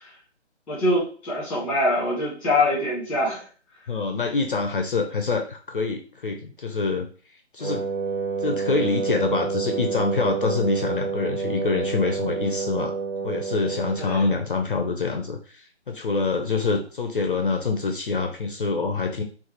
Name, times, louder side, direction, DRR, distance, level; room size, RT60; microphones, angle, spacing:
voice 1, 0.7-3.4 14.0-14.2, left 1 dB, 5° left, -4 dB, 1.1 m, -24 dB
voice 2, 3.9-7.8 8.4-12.9 13.2-19.2, left 4 dB, 50° left, 4 dB, 0.4 m, -26 dB
Wind instrument woodwind instrument, 7.6-14.2, right 5 dB, 45° right, 1.0 m, -28 dB
3.8 x 2.4 x 2.8 m, 0.41 s
figure-of-eight pair, 140°, 35 cm